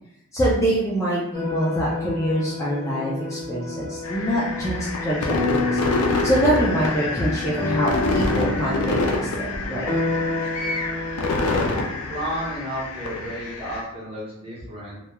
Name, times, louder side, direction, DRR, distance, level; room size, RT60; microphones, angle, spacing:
voice 1, 0.3-5.8 6.2-9.9, right 1 dB, 15° left, -6 dB, 0.4 m, -24 dB
sound 1, 1.3-11.5, left 2 dB, 10° right, 1.2 m, -29 dB
sound 2, 4.0-13.8, left 3 dB, 80° left, 0.4 m, -27 dB
voice 2, 12.1-15.0, equal, 25° right, -5 dB, 0.8 m, -32 dB
3.0 x 2.1 x 2.2 m, 0.80 s
head